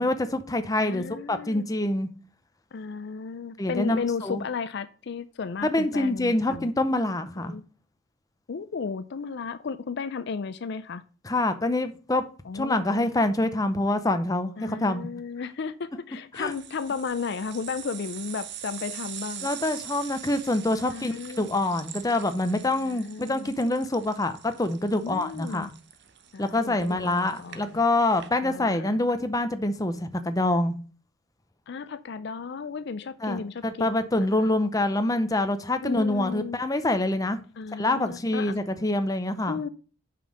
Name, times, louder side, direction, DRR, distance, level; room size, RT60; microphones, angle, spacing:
voice 1, 0.0-2.1 3.6-4.4 5.6-7.5 11.2-12.2 12.5-15.1 16.3-16.5 19.4-25.7 26.4-30.7 33.2-37.4 37.8-39.6, left 2 dB, 15° left, 0.7 m, -26 dB
voice 2, 0.8-1.6 2.7-6.7 7.4-7.6 8.5-11.0 12.4-13.1 14.6-19.5 20.9-21.5 22.8-23.5 25.0-25.7 26.3-27.8 28.4-28.9 31.7-33.9 34.4-34.7 35.8-36.6 37.6-38.6 39.5-39.7, left 5 dB, 55° left, 0.4 m, -34 dB
sound 1, 16.3-28.3, right 10 dB, 55° right, 0.8 m, -43 dB
5.6 x 5.3 x 6.4 m
head